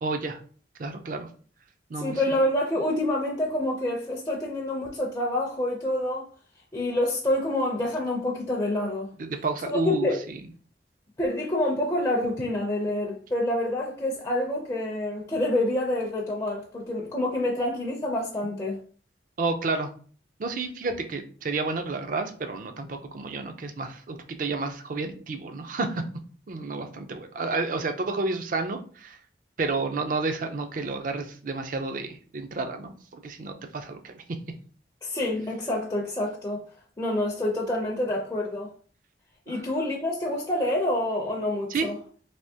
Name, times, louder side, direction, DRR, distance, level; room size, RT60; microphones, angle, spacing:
voice 1, 0.0-0.4 0.8-1.3 1.9-2.3 9.2-10.1 19.4-19.9 20.4-26.0 26.5-29.2 29.6-34.2 39.5-39.6 41.7-41.9, right 3 dB, 50° right, 0.4 m, -30 dB
voice 2, 1.9-6.3 6.7-9.1 9.7-10.2 11.2-18.8 35.0-36.6 37.0-38.7 39.5-41.9, left 1 dB, 20° left, 0.5 m, -27 dB
3.4 x 2.8 x 2.7 m
head